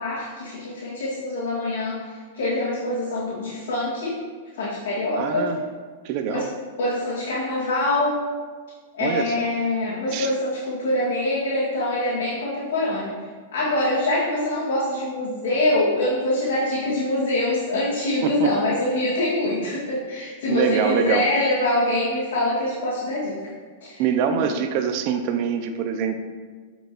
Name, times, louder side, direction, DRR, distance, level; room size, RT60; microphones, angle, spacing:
voice 1, 0.0-4.2 4.5-5.5 6.3-6.5 6.8-8.2 8.9-23.4 23.8-24.0 24.3-24.4, left 1 dB, 75° left, -9 dB, 2.1 m, -24 dB
voice 2, 5.1-5.6 6.0-6.4 9.0-9.5 10.1-10.3 18.2-18.5 20.5-21.2 24.0-26.2, right 7 dB, 50° right, 7 dB, 0.6 m, -24 dB
8.4 x 5.1 x 3.0 m, 1.5 s
hypercardioid pair, 130°, 0 cm